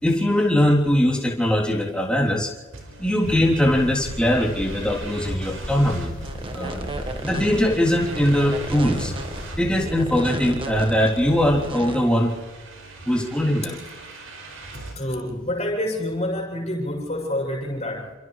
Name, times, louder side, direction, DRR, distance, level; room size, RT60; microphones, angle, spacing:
voice 1, 0.0-2.5 3.0-6.1 6.5-6.9 7.2-9.1 9.6-12.3 13.0-13.8, equal, 5° left, -2 dB, 3.4 m, -21 dB
sound 1, 2.7-15.0, right 2 dB, 80° right, 5.6 m, -42 dB
sound 2, 3.2-11.7, equal, 65° left, 3.4 m, -36 dB
sound 3, 6.2-12.0, right 1 dB, 25° right, 1.5 m, -34 dB
voice 2, 15.0-18.1, left 1 dB, 30° left, -2 dB, 7.0 m, -27 dB
29.0 x 27.0 x 3.3 m, 1.3 s
head